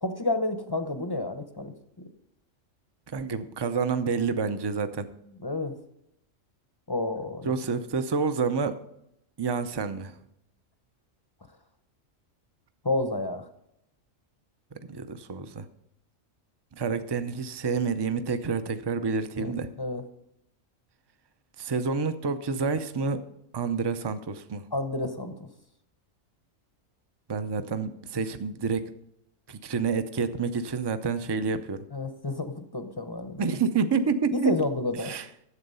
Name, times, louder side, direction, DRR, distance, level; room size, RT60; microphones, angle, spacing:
voice 1, 0.0-2.1 5.4-5.7 6.9-7.5 12.8-13.5 19.4-20.0 24.7-25.3 31.9-33.5 34.3-35.1, left 2 dB, 25° left, 8 dB, 0.6 m, -30 dB
voice 2, 3.1-5.1 7.4-8.8 9.4-10.2 14.9-15.7 16.8-19.7 21.6-23.2 23.5-24.6 27.3-28.9 29.5-31.8 33.4-34.5 35.0-35.3, right 5 dB, 30° right, 10 dB, 0.4 m, -28 dB
11.5 x 8.0 x 5.5 m, 0.79 s
omnidirectional pair, 1.4 m